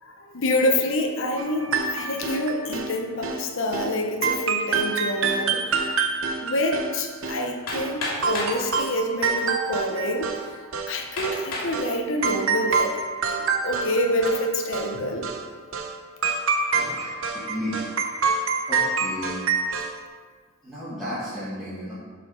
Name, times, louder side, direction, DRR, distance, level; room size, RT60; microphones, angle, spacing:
voice 1, 0.0-5.6 6.4-10.3 10.9-12.9 13.3-15.3, left 1 dB, 55° left, 2 dB, 0.9 m, -27 dB
sound 1, 1.4-2.9 3.2-3.4 3.7-3.9 4.2-7.9 8.2-10.5 10.7-11.4 11.7-11.9 12.2-14.5 14.7-14.9 15.2-15.4 15.7-15.9 16.2-20.0, right 5 dB, 60° right, 0.7 m, -27 dB
Hammer, 7.7-8.6 9.5-9.6 10.2-10.3 11.2-11.8 12.3-12.8, left 2 dB, 80° left, 2.5 m, -31 dB
voice 2, 16.7-17.8 18.7-19.4 20.6-21.9, equal, ahead, -14 dB, 2.1 m, -33 dB
7.6 x 5.1 x 6.0 m, 1.5 s
head